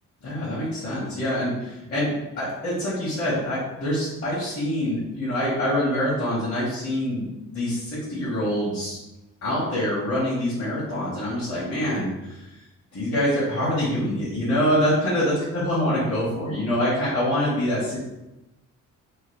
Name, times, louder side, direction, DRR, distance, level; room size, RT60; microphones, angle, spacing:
voice 1, 0.2-9.0 9.4-12.5 12.9-18.0, equal, 50° left, -9 dB, 1.2 m, -25 dB
3.0 x 2.2 x 3.2 m, 0.97 s
cardioid pair, 90°, 30 cm